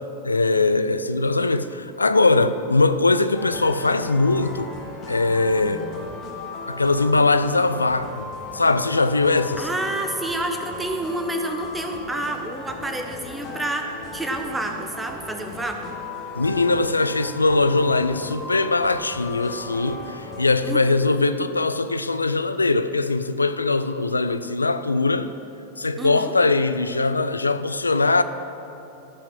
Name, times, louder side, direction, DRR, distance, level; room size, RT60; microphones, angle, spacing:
voice 1, 0.2-4.7 5.1-5.8 6.7-9.7 16.3-25.3 25.8-28.2, left 3 dB, 80° left, 0.4 m, -21 dB
sound 1, 3.3-20.4, left 3 dB, 35° left, 2.1 m, -37 dB
voice 2, 5.6-6.0 9.6-15.9 20.6-21.0 26.0-26.3, right 2 dB, 10° right, 1.1 m, -29 dB
16.0 x 5.9 x 6.1 m
figure-of-eight pair, 90°, 0 cm